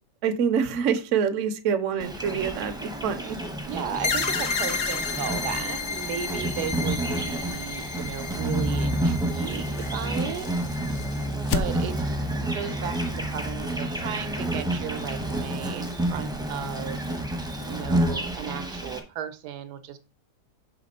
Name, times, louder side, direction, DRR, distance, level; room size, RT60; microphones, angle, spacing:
voice 1, 0.2-3.4, right 7 dB, 60° right, 8 dB, 0.9 m, -26 dB
Insect, 2.0-19.0, right 1 dB, 5° right, 0.5 m, -29 dB
voice 2, 3.6-10.5 10.9-11.1 11.4-17.0 17.3-20.0, right 9 dB, 80° right, 9 dB, 1.3 m, -35 dB
sound 1, 4.0-11.3, left 5 dB, 55° left, 0.8 m, -32 dB
sound 2, 6.6-12.2, left 7 dB, 80° left, 1.2 m, -38 dB
5.8 x 3.5 x 5.3 m, 0.32 s
omnidirectional pair, 1.7 m